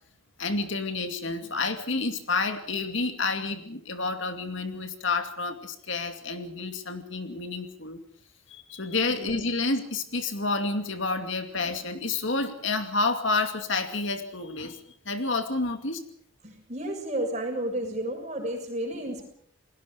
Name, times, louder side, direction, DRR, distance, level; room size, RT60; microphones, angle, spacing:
voice 1, 0.4-8.0 8.5-16.0, left 3 dB, 65° left, 7 dB, 2.5 m, -29 dB
voice 2, 16.4-19.3, right 1 dB, 35° right, 2 dB, 6.9 m, -32 dB
29.0 x 20.5 x 5.2 m, 0.64 s
head